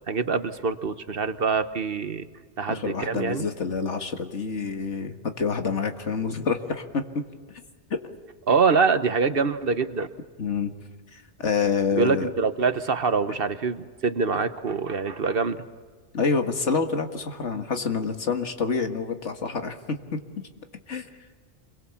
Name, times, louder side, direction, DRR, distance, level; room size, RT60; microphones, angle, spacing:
voice 1, 0.1-2.3 2.6-3.5 8.5-10.1 11.9-15.6, right 5 dB, 55° right, 10 dB, 1.2 m, -24 dB
voice 2, 2.7-7.0 7.9-8.0 10.4-10.7 11.1-12.3 16.1-20.2 20.9-21.1, left 5 dB, 80° left, 5 dB, 2.0 m, -27 dB
28.5 x 22.5 x 7.2 m, 1.5 s
omnidirectional pair, 1.2 m